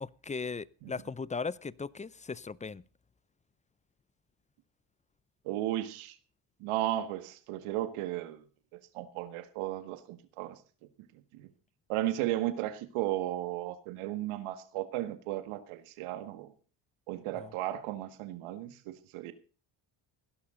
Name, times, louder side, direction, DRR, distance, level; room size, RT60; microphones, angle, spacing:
voice 1, 0.0-2.8 17.4-17.5, left 4 dB, 15° left, 0.5 m, -38 dB
voice 2, 5.5-6.2 6.6-8.4 8.9-10.6 11.3-11.5 11.9-16.5 17.1-19.3, right 14 dB, 80° right, 1.8 m, -35 dB
16.5 x 11.5 x 3.8 m
supercardioid pair, 70°, 50 cm